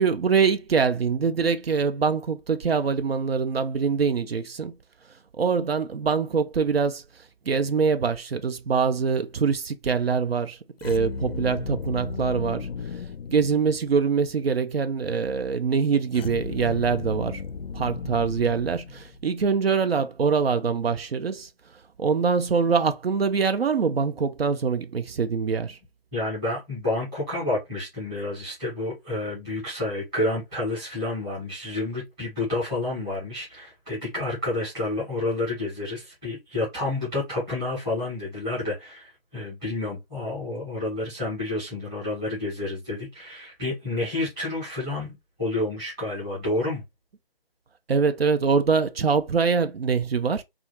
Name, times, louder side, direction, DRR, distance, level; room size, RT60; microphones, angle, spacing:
voice 1, 0.0-4.7 5.4-7.0 7.5-12.7 13.3-17.4 17.7-21.5 22.0-25.8 47.9-50.4, right 5 dB, 75° right, 0.5 m, -24 dB
sound 1, 10.8-14.1 16.1-19.4, left 5 dB, 75° left, 0.5 m, -35 dB
voice 2, 26.1-46.8, left 2 dB, 5° right, 0.8 m, -29 dB
2.5 x 2.3 x 2.8 m
figure-of-eight pair, 160°, 30 cm